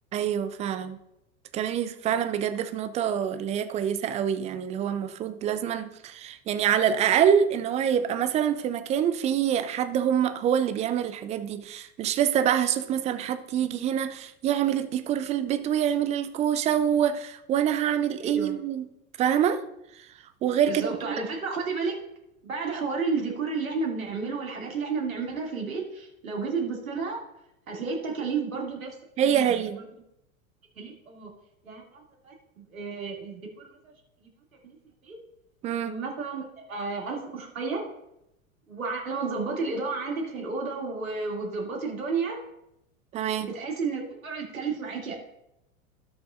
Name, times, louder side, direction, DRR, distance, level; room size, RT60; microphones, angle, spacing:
voice 1, 0.1-1.0 1.5-18.9 19.2-19.6 19.9-20.1 20.4-21.1 29.2-29.8 35.6-36.0 43.1-43.5, right 9 dB, 15° right, 0.4 m, -26 dB
voice 2, 18.2-18.6 20.7-21.9 22.4-27.2 27.7-29.4 30.8-31.3 31.6-33.8 35.0-35.2 35.8-37.8 38.7-42.4 43.5-45.1, right 4 dB, 75° right, 2.7 m, -32 dB
17.0 x 5.8 x 2.6 m
figure-of-eight pair, 90°, 42 cm